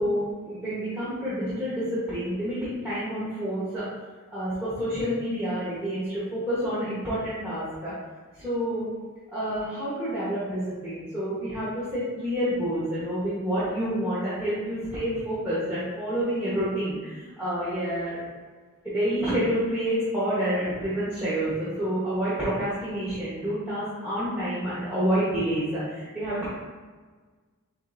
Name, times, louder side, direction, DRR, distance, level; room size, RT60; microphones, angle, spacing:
voice 1, 0.0-3.8 4.3-8.0 8.3-8.9 9.3-18.3 18.9-26.5, equal, 10° right, -12 dB, 1.1 m, -28 dB
7.3 x 2.6 x 2.6 m, 1.4 s
head